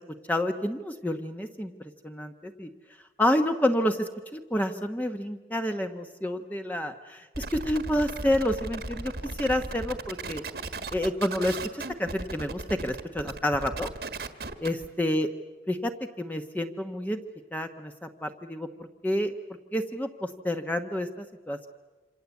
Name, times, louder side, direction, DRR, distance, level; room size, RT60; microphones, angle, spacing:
voice 1, 0.3-2.7 3.2-9.1 9.4-10.4 10.9-13.9 14.6-15.3 15.7-15.9 16.2-17.2 17.5-19.3 19.7-21.7, left 1 dB, 10° left, 6 dB, 1.0 m, -29 dB
sound 1, 7.3-14.9, right 3 dB, 60° right, 1.6 m, -36 dB
27.0 x 26.5 x 8.3 m, 1.2 s
head